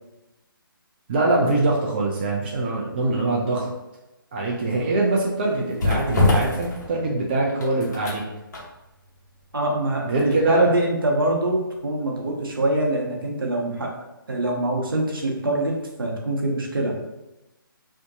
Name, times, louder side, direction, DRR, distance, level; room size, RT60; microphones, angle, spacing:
voice 1, 1.1-3.7 4.3-8.2 10.0-10.7, right 2 dB, 25° right, -2 dB, 0.3 m, -23 dB
sound 1, 4.5-12.5 12.8-13.0, left 2 dB, 50° left, 0.8 m, -28 dB
voice 2, 9.5-16.9, right 2 dB, 70° right, 0 dB, 0.7 m, -24 dB
2.6 x 2.1 x 2.6 m, 0.97 s
figure-of-eight pair, 140°, 12 cm